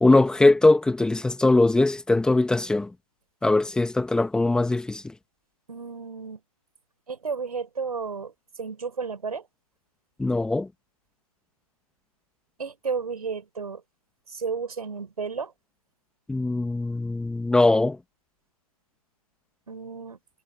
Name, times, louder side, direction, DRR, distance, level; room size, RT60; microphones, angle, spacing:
voice 1, 0.0-2.9 3.4-5.1 10.2-10.7 16.3-18.0, left 2 dB, 5° left, 1.7 m, -21 dB
voice 2, 5.7-6.4 7.1-8.3 8.6-9.4 12.6-13.8 14.3-15.5 19.7-20.2, right 5 dB, 75° right, 5.4 m, -32 dB
figure-of-eight pair, 130°, 20 cm